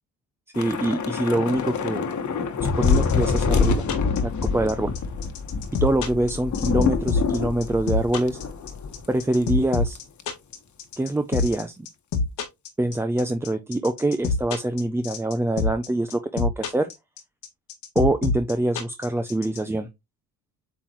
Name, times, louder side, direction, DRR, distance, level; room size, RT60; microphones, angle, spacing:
Thunder / Rain, 0.5-9.1 9.4-9.6 9.9-10.2, left 5 dB, 45° left, 1.3 m, -26 dB
voice 1, 0.6-2.1 2.6-3.9 4.2-4.9 5.8-8.4 9.1-10.0 11.0-11.9 12.8-16.9 18.0-19.9, right 1 dB, 5° right, 0.4 m, -24 dB
sound 1, 2.8-19.6, left 4 dB, 80° left, 1.9 m, -25 dB
8.4 x 3.8 x 3.0 m
cardioid pair, 120°, 41 cm